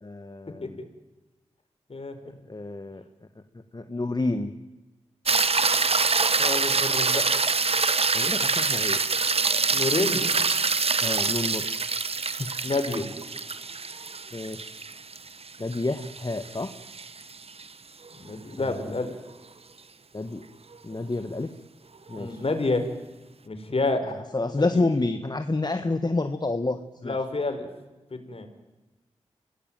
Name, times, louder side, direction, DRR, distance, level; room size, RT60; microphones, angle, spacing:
voice 1, 0.0-0.8 2.5-3.0 3.7-4.5 8.1-9.0 11.0-11.7 12.4-12.5 14.3-14.8 15.6-16.7 18.6-18.8 20.1-20.5 20.8-21.5 22.1-22.4 24.3-27.2, left 2 dB, 35° left, 8 dB, 1.6 m, -29 dB
sound 1, 5.3-17.7 22.1-22.2, right 4 dB, 55° right, 1.4 m, -25 dB
voice 2, 6.4-7.4 9.7-10.2 12.6-13.0 18.2-19.1 22.2-22.9 23.5-24.1 24.7-24.8 27.0-27.7 28.1-28.5, left 2 dB, 55° left, 7 dB, 4.9 m, -28 dB
26.0 x 18.5 x 9.3 m, 1.1 s
cardioid pair, 40°, 12 cm